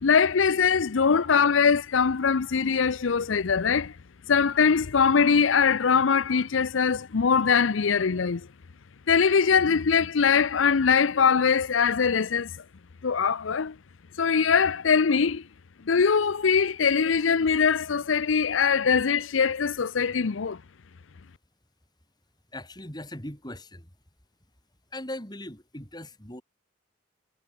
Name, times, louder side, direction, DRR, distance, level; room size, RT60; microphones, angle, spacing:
voice 1, 0.0-3.9 4.3-8.5 9.1-12.6 13.0-13.7 14.2-15.4 15.9-20.6, left 6 dB, 80° left, 0.6 m, -22 dB
voice 2, 22.5-23.9 24.9-26.4, left 1 dB, 20° left, 5.0 m, -39 dB
head